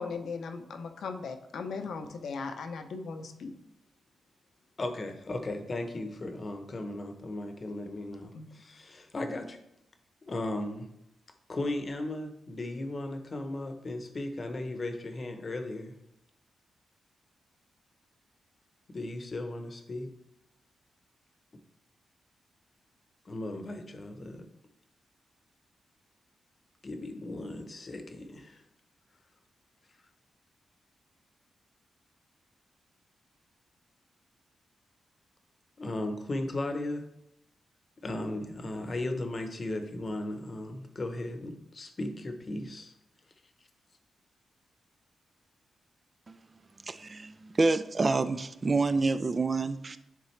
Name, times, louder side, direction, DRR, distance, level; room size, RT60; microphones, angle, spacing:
voice 1, 0.0-3.5 8.3-8.5, left 4 dB, 75° left, 6 dB, 0.8 m, -38 dB
voice 2, 4.8-9.6 10.2-10.9 11.5-15.9 18.9-20.1 23.3-24.5 26.8-28.6 35.8-37.0 38.0-42.9, left 2 dB, 40° left, 6 dB, 0.9 m, -36 dB
voice 3, 46.8-50.0, right 3 dB, 35° right, 13 dB, 0.4 m, -28 dB
10.5 x 3.7 x 3.3 m, 0.82 s
cardioid pair, 95°, 0 cm